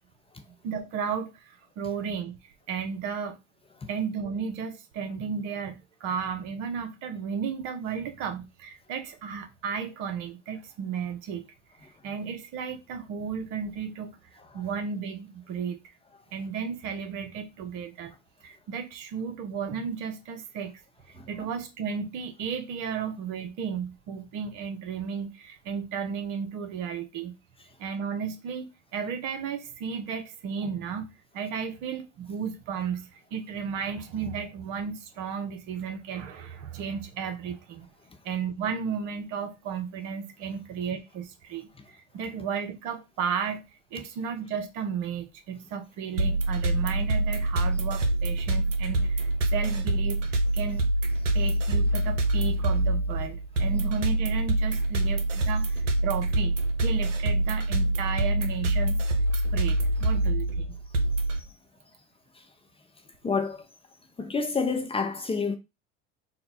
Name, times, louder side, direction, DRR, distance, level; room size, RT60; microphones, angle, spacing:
voice 1, 0.6-2.4 2.7-3.4 3.9-11.5 12.0-14.2 14.5-15.8 16.3-18.1 18.4-20.8 21.1-27.3 27.8-28.7 28.9-31.1 31.3-37.9 38.2-43.6 43.9-50.9 51.3-56.5 56.8-59.0 59.5-60.7, right 6 dB, 55° right, 1.0 m, -34 dB
sound 1, 46.2-61.4, right 1 dB, 90° right, 0.6 m, -25 dB
voice 2, 63.2-63.6 64.2-65.6, left 4 dB, 15° left, 0.6 m, -27 dB
4.1 x 2.2 x 4.0 m
hypercardioid pair, 70°, 35 cm